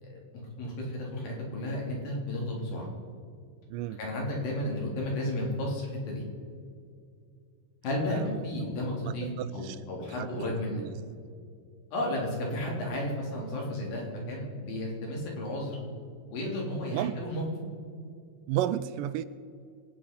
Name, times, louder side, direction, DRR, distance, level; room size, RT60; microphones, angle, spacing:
voice 1, 0.0-2.9 4.0-6.2 7.8-10.8 11.9-15.8 16.3-17.4, left 1 dB, 80° left, -2 dB, 5.1 m, -33 dB
voice 2, 8.1-8.4 9.1-9.8 10.2-10.9 16.9-17.2 18.5-19.2, right 12 dB, 80° right, 14 dB, 2.1 m, -33 dB
25.0 x 9.0 x 5.3 m, 2.3 s
omnidirectional pair, 4.0 m